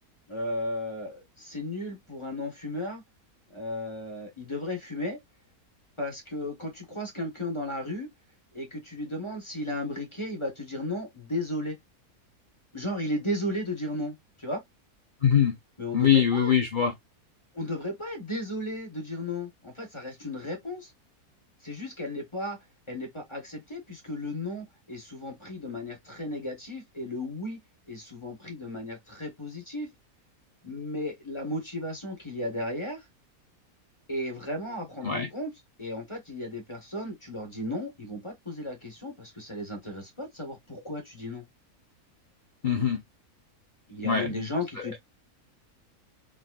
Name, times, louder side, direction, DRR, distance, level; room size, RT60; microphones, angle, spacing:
voice 1, 0.3-3.0 3.5-5.2 6.0-8.1 8.5-11.8 12.7-14.6 15.8-16.5 17.5-20.9 21.6-22.6 22.9-27.6 27.9-29.9 30.6-33.1 34.1-35.5 35.8-41.4 43.9-45.0, left 1 dB, 20° left, 1.4 m, -35 dB
voice 2, 15.2-15.5 15.9-16.9 35.0-35.3 42.6-43.0 44.0-44.5, left 8 dB, 45° left, 0.7 m, -23 dB
4.8 x 3.8 x 2.4 m
omnidirectional pair, 1.6 m